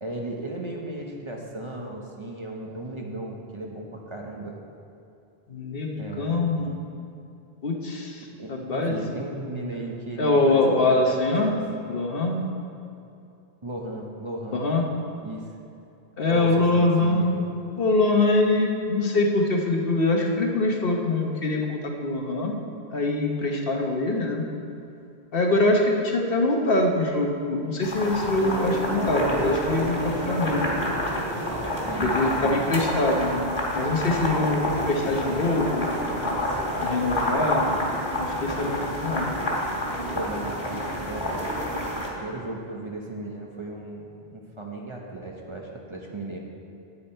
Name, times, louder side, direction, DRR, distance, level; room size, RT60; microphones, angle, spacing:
voice 1, 0.0-4.6 5.9-6.5 8.4-11.1 11.4-11.6 13.6-14.6 15.2-15.5 16.3-17.4 31.9-32.6 40.1-41.5 41.9-46.4, right 2 dB, 30° right, -1 dB, 0.9 m, -35 dB
voice 2, 5.5-6.7 7.6-9.0 10.2-11.5 11.9-12.5 14.5-14.8 16.2-22.6 22.9-24.4 25.3-30.7 32.0-33.5 33.7-35.9 36.8-37.8 38.2-39.3, left 2 dB, 65° left, 1 dB, 1.2 m, -24 dB
sound 1, 27.8-42.1, left 1 dB, 25° left, 1.7 m, -29 dB
sound 2, 28.4-41.8, right 1 dB, 75° right, 1.5 m, -34 dB
9.7 x 8.7 x 4.4 m, 2.6 s
omnidirectional pair, 1.0 m